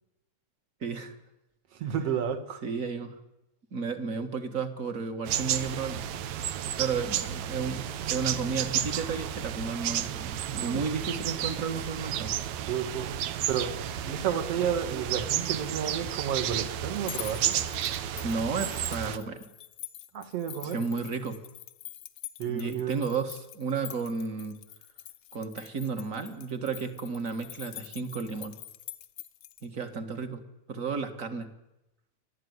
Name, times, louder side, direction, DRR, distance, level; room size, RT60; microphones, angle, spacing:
voice 1, 0.8-1.1 2.6-3.1 3.7-6.0 6.6-12.3 18.2-19.5 20.6-21.4 22.5-24.6 25.3-28.5 29.6-30.4 30.7-31.5, right 5 dB, 35° right, 7 dB, 1.6 m, -33 dB
voice 2, 1.7-2.6 6.4-6.7 10.6-10.8 12.7-13.1 13.5-13.8 14.0-17.6 20.1-20.8 22.4-23.0, right 8 dB, 55° right, 6 dB, 2.6 m, -31 dB
sound 1, 5.2-19.2, right 10 dB, 75° right, 2.2 m, -32 dB
sound 2, 17.0-29.6, left 13 dB, 65° left, 1.3 m, -45 dB
29.5 x 12.0 x 9.6 m, 0.94 s
omnidirectional pair, 3.4 m